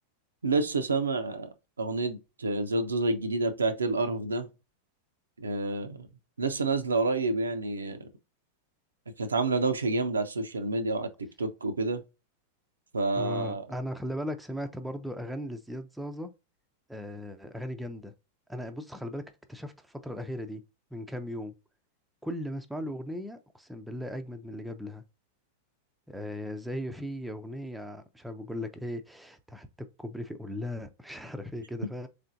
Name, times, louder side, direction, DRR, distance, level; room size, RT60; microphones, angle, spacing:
voice 1, 0.4-1.5 1.8-4.5 5.4-6.1 6.4-8.1 9.2-11.1 11.4-12.0 12.9-13.7, right 3 dB, 75° right, 0.5 m, -28 dB
voice 2, 13.2-16.3 16.9-18.1 18.5-19.2 19.5-20.6 20.9-21.5 22.2-25.0 26.1-32.1, left 1 dB, 5° right, 0.5 m, -37 dB
3.6 x 3.3 x 2.5 m
figure-of-eight pair, 90°, 0 cm